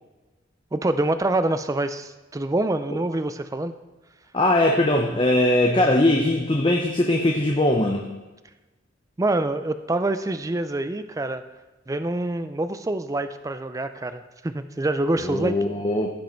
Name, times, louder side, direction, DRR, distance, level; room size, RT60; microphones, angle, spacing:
voice 1, 0.7-3.8 9.2-11.4 11.9-15.6, right 2 dB, 15° right, 10 dB, 0.4 m, -26 dB
voice 2, 4.3-8.0 15.2-16.2, left 1 dB, 25° left, 1 dB, 0.7 m, -21 dB
15.5 x 5.4 x 4.4 m, 1.1 s
head